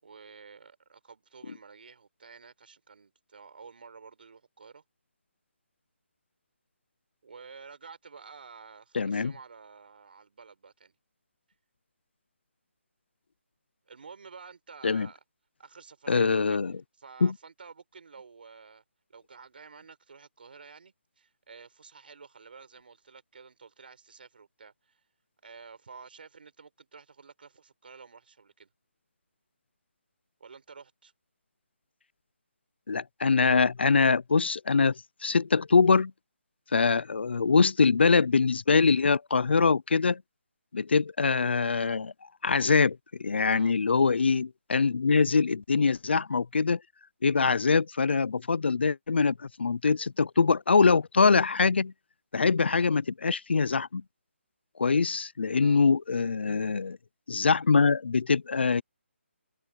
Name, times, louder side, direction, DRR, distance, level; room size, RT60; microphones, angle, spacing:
voice 1, 0.0-4.8 7.2-10.9 13.9-15.2 15.6-16.6 17.0-18.8 19.1-25.0 25.4-28.7 30.4-31.1 36.9-37.0 43.5-43.7 55.6-55.8, right 5 dB, 50° right, 4.3 m, -50 dB
voice 2, 8.9-9.3 14.8-15.1 16.1-16.8 17.2-17.3 32.9-36.1 36.7-40.2 40.7-42.1 42.4-46.8 47.2-51.9 52.3-54.0 54.8-57.0 57.3-58.8, left 4 dB, 55° left, 0.6 m, -24 dB
hypercardioid pair, 175°, 7 cm